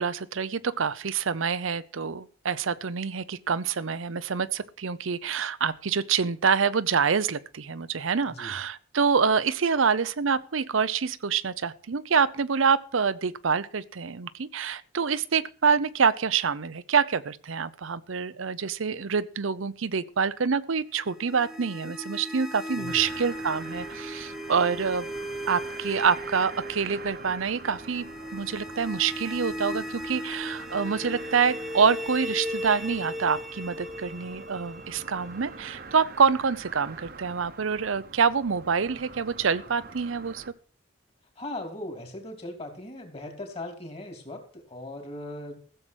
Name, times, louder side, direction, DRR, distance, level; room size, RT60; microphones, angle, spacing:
voice 1, 0.0-25.1 25.5-40.4, right 6 dB, 75° right, 0.7 m, -26 dB
sound 1, 21.0-35.9, equal, ahead, 0.7 m, -37 dB
sound 2, 22.9-40.5, right 4 dB, 50° right, 1.1 m, -45 dB
voice 2, 41.4-45.6, left 1 dB, 30° left, 3.0 m, -39 dB
15.0 x 7.7 x 6.2 m
head